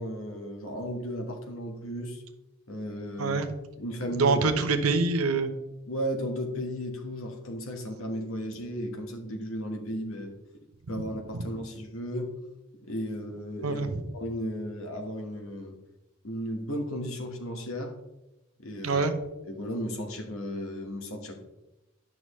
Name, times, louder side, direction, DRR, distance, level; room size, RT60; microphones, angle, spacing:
voice 1, 0.0-2.2 2.7-3.4 3.8-4.4 5.9-10.3 10.9-12.3 12.8-13.8 14.1-15.7 16.2-17.9 18.6-19.0 19.4-21.3, equal, 75° left, 2 dB, 1.4 m, -34 dB
voice 2, 4.1-5.5 11.3-11.4 13.6-14.0 18.8-19.1, right 4 dB, 85° right, 8 dB, 0.8 m, -25 dB
9.8 x 6.1 x 3.1 m, 0.97 s
head